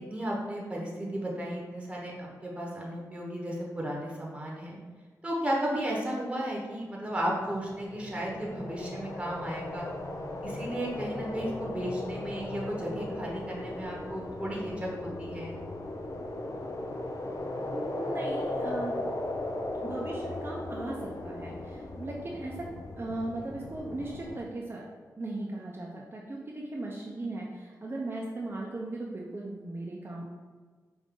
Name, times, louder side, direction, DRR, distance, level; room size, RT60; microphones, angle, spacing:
voice 1, 0.1-4.8 5.2-9.9 10.4-15.6, right 1 dB, 15° right, -2 dB, 1.0 m, -34 dB
sound 1, 7.4-24.4, left 1 dB, 50° left, 0.5 m, -37 dB
voice 2, 17.7-19.0 19.8-22.7 23.0-24.9 25.2-30.2, right 2 dB, 35° right, -3 dB, 0.6 m, -37 dB
4.9 x 2.6 x 3.7 m, 1.4 s
cardioid pair, 70°, 7 cm